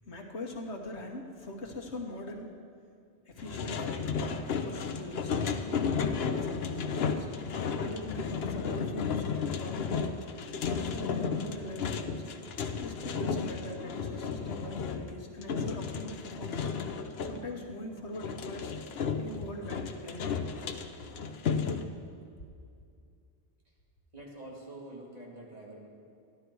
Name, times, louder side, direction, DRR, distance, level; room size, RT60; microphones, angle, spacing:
voice 1, 0.0-2.6 3.3-7.3 7.8-10.0 10.5-12.2 12.8-16.6 17.2-18.7 19.2-20.3, left 1 dB, 90° left, 1 dB, 1.6 m, -42 dB
sound 1, 3.4-17.4 18.1-21.8, left 5 dB, 70° left, 1.0 m, -33 dB
voice 2, 16.4-16.7 23.6-23.7 24.1-25.9, right 1 dB, 35° right, -4 dB, 2.5 m, -47 dB
13.5 x 11.5 x 4.7 m, 2.4 s
omnidirectional pair, 1.1 m